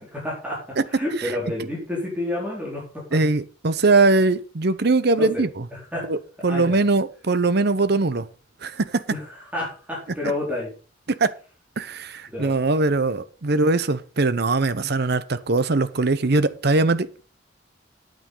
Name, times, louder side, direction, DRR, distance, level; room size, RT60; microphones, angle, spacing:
voice 1, 0.1-3.2 5.2-5.4 5.7-6.1 6.5-6.8 9.1-10.7 12.3-12.5 13.5-13.6, left 1 dB, 10° right, 4.3 m, -30 dB
voice 2, 3.1-5.5 6.1-6.2 6.4-8.3 8.6-9.0 11.2-11.3 11.8-17.2, right 3 dB, 60° right, 0.8 m, -21 dB
9.1 x 9.0 x 5.5 m
head